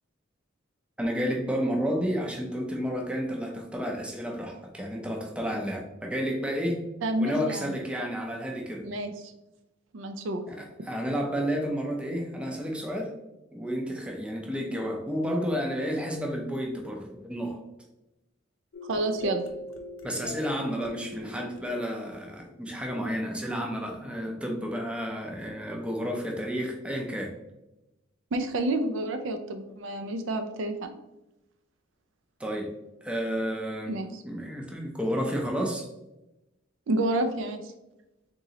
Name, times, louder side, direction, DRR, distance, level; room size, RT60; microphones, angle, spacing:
voice 1, 1.0-6.8 7.2-8.9 10.5-13.1 13.5-17.6 20.0-27.3 32.4-32.7 33.0-33.9 34.2-35.9, equal, 5° right, 1 dB, 0.5 m, -31 dB
voice 2, 7.0-7.7 8.8-9.3 9.9-10.4 18.9-19.4 28.3-30.9 33.9-34.2 36.9-37.7, right 1 dB, 65° right, 7 dB, 0.4 m, -29 dB
sound 1, 18.7-23.2, left 1 dB, 90° left, 0.6 m, -42 dB
3.7 x 3.0 x 2.8 m, 0.93 s
head